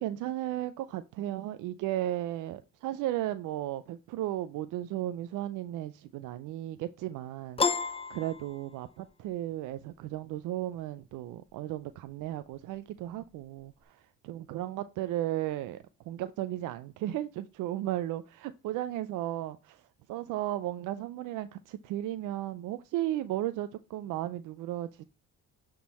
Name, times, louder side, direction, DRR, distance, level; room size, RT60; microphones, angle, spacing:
voice 1, 0.0-7.6 8.1-15.8 16.1-19.8 20.1-25.0, right 13 dB, 85° right, 0.5 m, -35 dB
Piano, 7.6-9.1, left 4 dB, 20° left, 0.6 m, -31 dB
8.6 x 3.8 x 4.1 m
cardioid pair, 90°, 30 cm